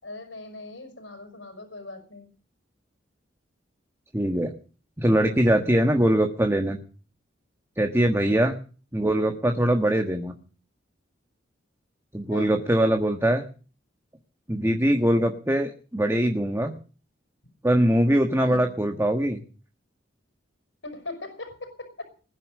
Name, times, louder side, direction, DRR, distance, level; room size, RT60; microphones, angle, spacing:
voice 1, 0.0-2.3 8.2-8.4 12.3-12.5 18.4-18.7 20.8-22.1, left 2 dB, 85° left, 8 dB, 5.5 m, -40 dB
voice 2, 4.1-4.5 5.0-6.8 7.8-8.5 8.9-10.3 12.1-13.4 14.5-16.7 17.6-19.4, right 1 dB, 15° right, 5 dB, 1.5 m, -22 dB
20.5 x 10.0 x 6.6 m, 0.39 s
head